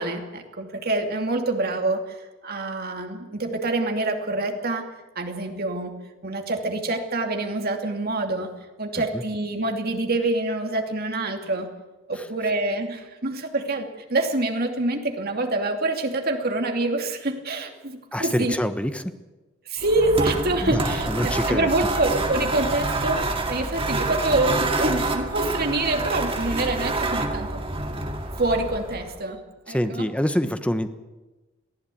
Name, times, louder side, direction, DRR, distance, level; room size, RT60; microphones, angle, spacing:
voice 1, 0.0-2.2 2.4-4.9 5.2-6.0 6.2-8.5 8.8-11.7 12.1-18.5 19.7-23.2 23.5-27.6 28.4-29.4 29.7-30.1, right 2 dB, 45° right, 4 dB, 2.6 m, -26 dB
voice 2, 18.1-19.0 20.6-21.7 29.7-30.9, equal, 5° left, 9 dB, 1.1 m, -26 dB
sound 1, 19.8-29.2, right 2 dB, 25° right, 2.2 m, -27 dB
23.0 x 15.0 x 8.6 m, 1.2 s
head